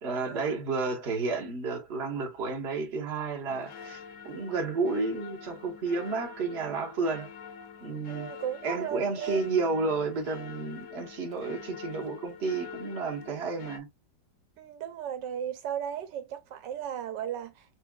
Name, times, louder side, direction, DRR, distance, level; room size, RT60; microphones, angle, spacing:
voice 1, 0.0-7.3 7.8-8.3 8.6-13.9, right 4 dB, 40° right, 1.3 m, -31 dB
sound 1, 3.5-13.8, left 7 dB, 60° left, 0.8 m, -46 dB
voice 2, 8.1-9.4 14.6-17.6, right 9 dB, 80° right, 1.4 m, -36 dB
6.1 x 2.3 x 2.3 m
omnidirectional pair, 1.9 m